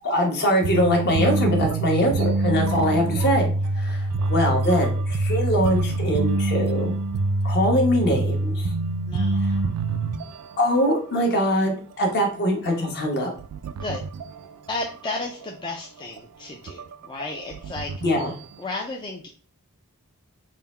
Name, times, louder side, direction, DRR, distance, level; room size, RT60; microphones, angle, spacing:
voice 1, 0.0-6.9 7.4-8.7 9.4-9.6 10.6-13.3 18.0-18.3, equal, 50° left, 1 dB, 1.1 m, -23 dB
sound 1, 0.6-10.9 11.1-11.4 11.7-11.8 12.2-14.9 15.2-15.7 16.2-16.3 16.7-18.6, right 2 dB, 90° right, 0.3 m, -25 dB
voice 2, 9.1-9.5 13.8-14.0 14.7-17.9 18.6-19.3, left 2 dB, 20° left, 0 dB, 0.4 m, -33 dB
3.7 x 2.1 x 4.2 m, 0.41 s
head